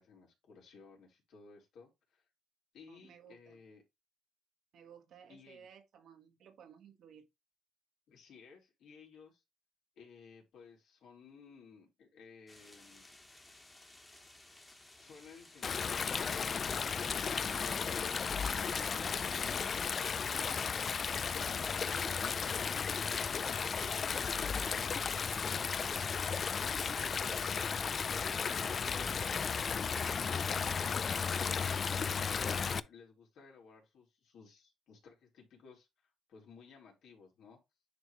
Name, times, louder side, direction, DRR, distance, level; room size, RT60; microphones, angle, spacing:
voice 1, 0.0-2.3 2.7-3.8 5.3-5.7 8.1-9.4 9.9-13.1 15.0-18.9 19.3-24.1 24.4-28.8 29.2-35.9 36.3-37.6, left 5 dB, 75° left, 3.2 m, -57 dB
voice 2, 2.9-3.6 4.7-7.3, right 8 dB, 70° right, 1.5 m, -57 dB
sound 1, 12.5-27.5, left 2 dB, 15° left, 1.7 m, -58 dB
Stream, 15.6-32.8, left 6 dB, 45° left, 0.4 m, -34 dB
9.9 x 3.5 x 3.1 m
cardioid pair, 90°, 0 cm